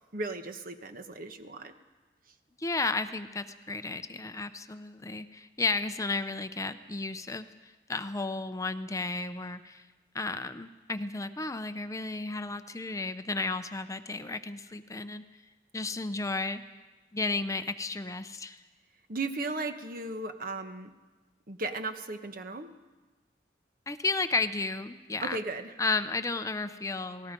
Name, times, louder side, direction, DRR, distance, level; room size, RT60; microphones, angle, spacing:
voice 1, 0.1-1.7 19.1-20.9 21.5-22.7 25.2-25.7, right 3 dB, 55° right, 8 dB, 1.2 m, -36 dB
voice 2, 2.6-7.5 7.9-9.8 10.1-15.2 15.7-16.6 17.1-18.6 23.9-25.4 25.8-27.3, left 3 dB, 20° left, 10 dB, 0.6 m, -33 dB
28.0 x 19.0 x 5.3 m, 1.2 s
head